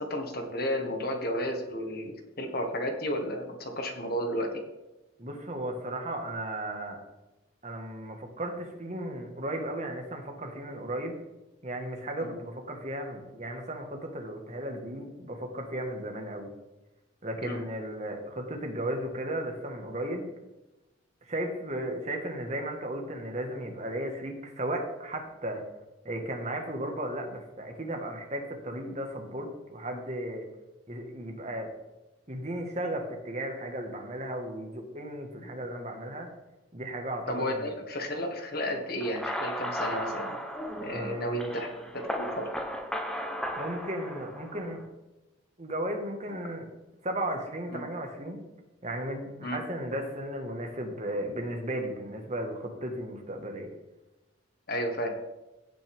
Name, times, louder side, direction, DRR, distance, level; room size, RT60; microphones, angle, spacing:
voice 1, 0.0-4.6 12.2-12.4 17.4-17.6 35.4-35.5 37.3-40.4 40.8-42.5 47.7-47.8 49.4-49.6 54.7-55.2, equal, 50° left, 4 dB, 1.6 m, -33 dB
voice 2, 5.2-7.0 7.6-11.1 11.6-16.5 17.2-20.3 21.3-25.6 26.1-30.5 30.9-31.7 32.3-36.3 36.7-37.7 40.9-41.6 43.6-44.8 45.6-46.7 47.0-48.4 48.8-53.7, right 1 dB, 35° right, 3 dB, 1.6 m, -35 dB
sound 1, 39.0-44.8, equal, 5° left, 0.9 m, -35 dB
16.0 x 6.1 x 3.6 m, 1.0 s
head